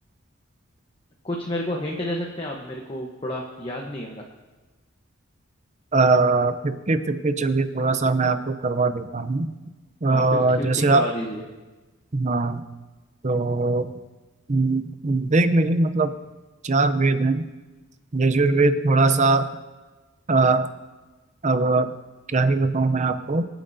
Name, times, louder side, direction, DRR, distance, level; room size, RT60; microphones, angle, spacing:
voice 1, 1.2-4.2 10.1-10.2 10.6-11.4, left 1 dB, 25° left, -1 dB, 1.0 m, -30 dB
voice 2, 5.9-9.5 10.0-11.0 12.1-12.6 13.2-13.9 14.5-16.1 16.6-17.5 18.1-19.5 20.3-20.7 21.4-21.9 22.3-23.4, right 3 dB, 35° right, 10 dB, 0.6 m, -21 dB
26.0 x 9.0 x 2.7 m, 1.2 s
head